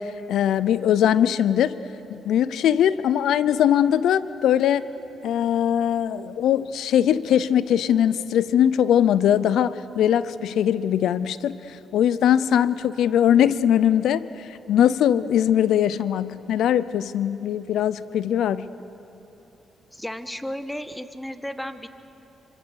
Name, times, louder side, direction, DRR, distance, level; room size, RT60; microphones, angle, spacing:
voice 1, 0.0-1.8 2.1-4.8 5.2-18.7, left 10 dB, 80° left, 16 dB, 0.6 m, -21 dB
voice 2, 19.9-21.9, equal, 5° left, 10 dB, 1.3 m, -34 dB
25.5 x 25.0 x 6.5 m, 2.9 s
cardioid pair, 70°, 0 cm